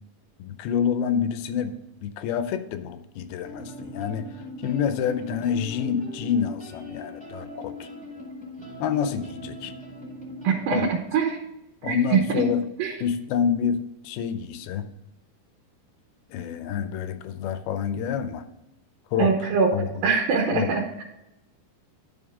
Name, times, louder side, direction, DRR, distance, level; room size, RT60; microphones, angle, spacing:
voice 1, 0.4-1.8 2.0-7.9 8.8-9.7 10.7-11.0 11.8-12.6 13.0-14.9 16.3-18.4 19.1-19.4 19.7-20.0 20.5-20.7, left 7 dB, 85° left, 10 dB, 2.6 m, -27 dB
sound 1, 3.4-10.7, left 1 dB, 5° left, 0.9 m, -40 dB
voice 2, 10.4-11.4 11.8-12.5 12.8-12.9 19.2-21.0, right 5 dB, 75° right, 1 dB, 2.8 m, -23 dB
11.0 x 6.7 x 3.6 m, 0.90 s
omnidirectional pair, 4.3 m